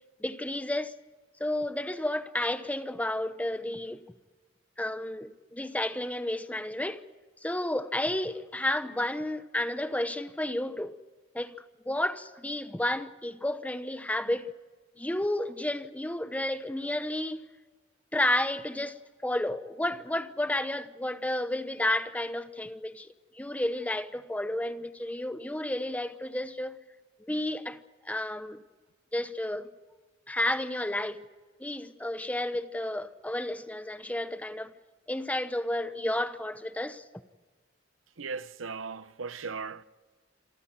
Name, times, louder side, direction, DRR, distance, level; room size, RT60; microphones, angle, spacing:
voice 1, 0.2-0.9 1.4-4.0 4.8-7.0 7.4-10.9 11.3-11.5 11.9-14.5 15.0-17.5 18.1-19.0 19.2-26.8 27.2-27.8 28.0-28.6 29.1-29.7 30.3-31.2 31.6-34.7 35.1-37.0, left 1 dB, 10° left, 0.8 m, -31 dB
voice 2, 38.2-39.8, right 5 dB, 75° right, 0.8 m, -37 dB
27.0 x 14.0 x 9.3 m
head